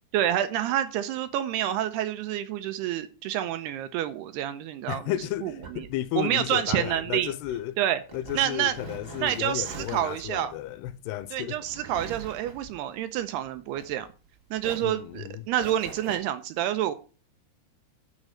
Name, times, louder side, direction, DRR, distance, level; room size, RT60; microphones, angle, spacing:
voice 1, 0.1-5.1 5.4-5.9 6.2-7.3 7.8-8.0 8.3-8.7 9.2-10.5 11.3-14.1 14.5-16.9, right 11 dB, 80° right, 2.5 m, -28 dB
voice 2, 4.9-7.8 8.1-11.6 14.8-15.4, left 13 dB, 80° left, 2.6 m, -33 dB
sound 1, 5.2-14.3 14.6-16.2, right 4 dB, 30° right, 1.9 m, -44 dB
10.5 x 6.2 x 6.3 m
omnidirectional pair, 5.1 m